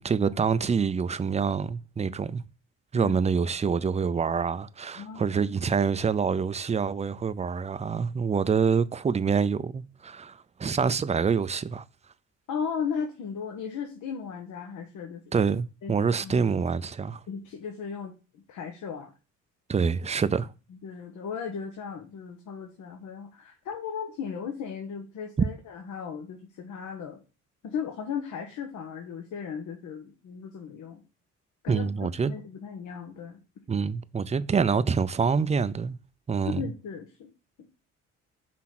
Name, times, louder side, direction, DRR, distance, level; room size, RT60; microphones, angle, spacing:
voice 1, 0.0-2.4 2.9-11.8 15.3-17.2 19.7-20.5 25.4-25.5 31.7-32.3 33.7-36.0 36.3-36.6, right 5 dB, 20° right, 0.5 m, -26 dB
voice 2, 4.9-5.3 12.5-15.2 15.8-16.4 17.3-19.1 20.7-27.2 27.6-31.0 31.6-33.4 36.4-37.3 37.6-37.7, left 6 dB, 75° left, 1.3 m, -36 dB
5.9 x 3.6 x 5.9 m
cardioid pair, 90°, 30 cm